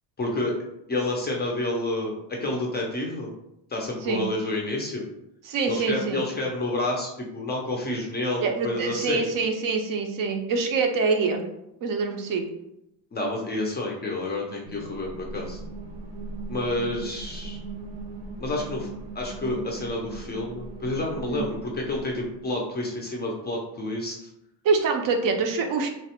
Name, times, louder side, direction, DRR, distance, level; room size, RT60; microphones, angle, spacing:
voice 1, 0.2-0.5 0.9-3.3 3.7-5.0 5.7-9.3 13.1-15.6 16.5-17.6 18.4-18.9 19.1-24.3, left 2 dB, 25° left, -1 dB, 0.3 m, -29 dB
voice 2, 5.5-6.2 8.4-11.4 11.8-12.4 21.3-21.5 24.6-25.9, right 4 dB, 55° right, 4 dB, 0.4 m, -25 dB
sound 1, 14.7-22.4, right 3 dB, 85° right, 0.7 m, -39 dB
3.1 x 2.0 x 2.8 m, 0.83 s
cardioid pair, 160°, 40 cm